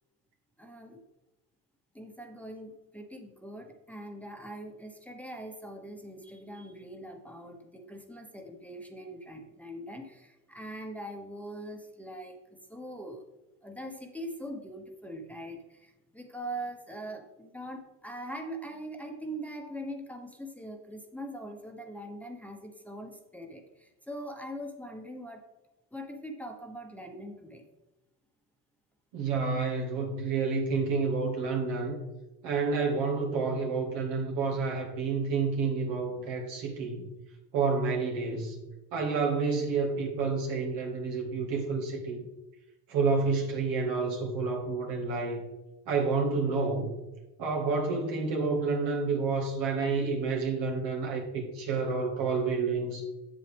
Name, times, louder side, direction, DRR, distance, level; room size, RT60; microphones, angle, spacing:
voice 1, 0.6-1.0 1.9-13.2 13.6-25.4 25.9-27.6, right 1 dB, 5° left, 3 dB, 1.1 m, -42 dB
voice 2, 29.1-32.0 32.4-37.1 37.5-38.6 38.9-42.2 42.9-45.4 45.9-46.9 47.4-53.1, right 4 dB, 75° right, 0 dB, 2.0 m, -29 dB
7.6 x 7.5 x 3.5 m, 1.0 s
supercardioid pair, 75°, 44 cm